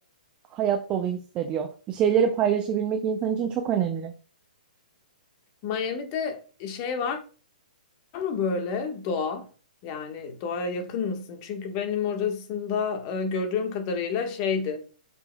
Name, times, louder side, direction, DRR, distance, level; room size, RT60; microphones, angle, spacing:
voice 1, 0.5-4.1, right 8 dB, 25° right, 0.6 m, -25 dB
voice 2, 5.6-7.2 8.1-9.5 9.8-14.8, left 5 dB, 35° left, 1.4 m, -29 dB
8.8 x 5.4 x 2.3 m
figure-of-eight pair, 125°, 5 cm